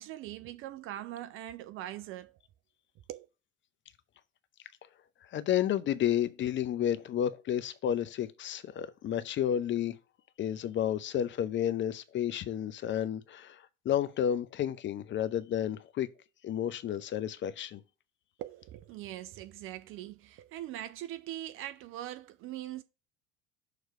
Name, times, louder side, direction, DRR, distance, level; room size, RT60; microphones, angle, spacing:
voice 1, 0.0-2.3 3.1-3.3 18.4-22.8, right 13 dB, 35° right, 0.4 m, -41 dB
voice 2, 5.3-10.0 10.4-16.1 16.4-17.8, left 10 dB, 30° left, 0.6 m, -31 dB
6.6 x 3.1 x 4.9 m
figure-of-eight pair, 65°, 38 cm